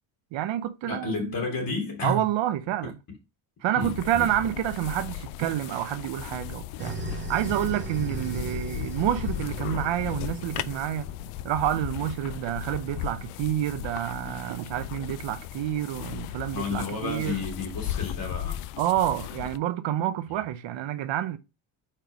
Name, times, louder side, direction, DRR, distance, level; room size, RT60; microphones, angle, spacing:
voice 1, 0.3-1.4 2.0-2.9 3.6-11.1 11.4-17.4 18.8-21.4, right 12 dB, 60° right, 0.8 m, -28 dB
voice 2, 0.9-2.2 2.8-2.9 3.7-4.3 16.5-18.6, left 3 dB, 45° left, 3.3 m, -31 dB
sound 1, 3.8-19.6, left 13 dB, 85° left, 0.6 m, -36 dB
sound 2, 6.8-11.6, right 9 dB, 20° right, 0.9 m, -39 dB
4.7 x 4.5 x 5.0 m
cardioid pair, 110°, 50 cm